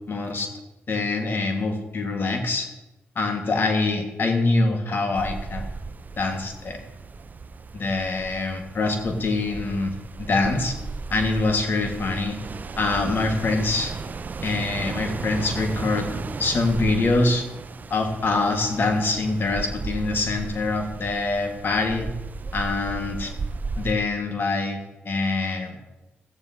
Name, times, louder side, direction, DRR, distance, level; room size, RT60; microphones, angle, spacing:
voice 1, 0.1-0.5 0.9-2.7 3.1-5.6 6.2-6.8 7.7-10.8 11.1-12.4 12.8-13.9 14.4-16.1 16.4-17.5 17.9-22.1 22.5-23.3 23.8-24.8 25.0-25.8, left 3 dB, 55° left, 4 dB, 1.6 m, -24 dB
sound 1, 5.1-23.9, right 4 dB, 40° right, 0.4 m, -35 dB
14.5 x 9.2 x 2.8 m, 1.0 s
cardioid pair, 60°, 4 cm